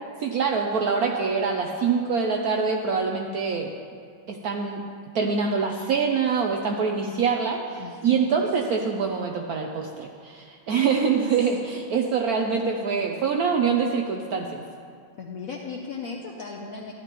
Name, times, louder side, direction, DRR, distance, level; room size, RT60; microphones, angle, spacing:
voice 1, 0.2-3.7 4.3-4.8 5.1-14.6, right 5 dB, 70° right, 1 dB, 0.9 m, -25 dB
voice 2, 7.8-8.2 15.2-16.9, left 4 dB, 70° left, 0 dB, 0.8 m, -36 dB
13.0 x 11.0 x 3.0 m, 2.2 s
omnidirectional pair, 2.2 m